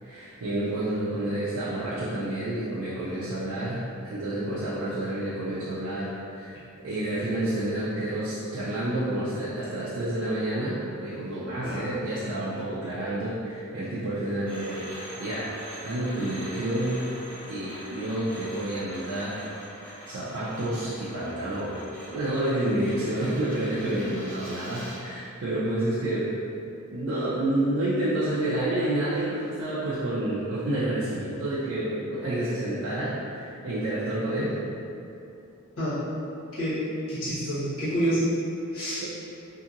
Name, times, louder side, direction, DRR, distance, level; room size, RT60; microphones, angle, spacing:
voice 1, 0.0-14.9 15.2-15.5 15.8-17.1 17.5-19.4 19.7-21.8 22.1-26.3 26.9-34.6 39.0-39.1, right 1 dB, 75° right, -9 dB, 0.4 m, -29 dB
sound 1, 14.4-25.1, equal, 5° left, 0.8 m, -44 dB
voice 2, 37.1-38.3 38.7-39.0, right 1 dB, 85° left, -12 dB, 1.2 m, -28 dB
2.8 x 2.7 x 2.4 m, 2.7 s
head